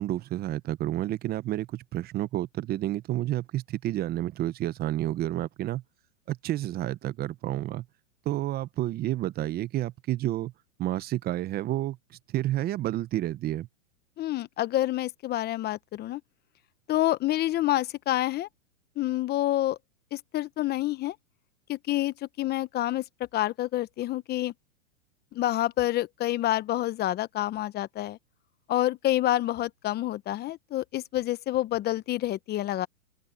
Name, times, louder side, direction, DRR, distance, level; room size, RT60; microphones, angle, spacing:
voice 1, 0.0-5.8 6.3-7.8 8.3-10.5 10.8-12.0 12.3-13.7, right 14 dB, 25° right, 0.9 m, -30 dB
voice 2, 14.2-16.2 16.9-18.5 19.0-19.8 20.1-21.1 21.7-23.0 23.3-24.5 25.3-28.2 28.7-32.9, left 14 dB, 25° left, 1.0 m, -28 dB
open air
hypercardioid pair, 125°, 40 cm